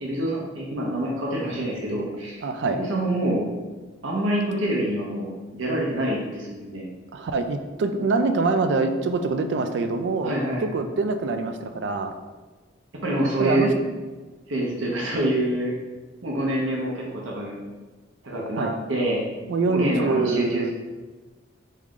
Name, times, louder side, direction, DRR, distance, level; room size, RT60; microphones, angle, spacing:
voice 1, 0.0-3.5 4.0-6.9 10.2-10.7 13.0-13.9 14.5-15.7 16.2-17.5 18.2-19.2 19.7-20.7, right 1 dB, 80° right, -3 dB, 0.7 m, -26 dB
voice 2, 2.4-2.8 7.1-10.3 10.6-12.1 13.4-13.7 18.6-18.7 19.5-20.7, right 3 dB, 60° right, 7 dB, 0.3 m, -24 dB
3.6 x 3.2 x 3.6 m, 1.3 s
head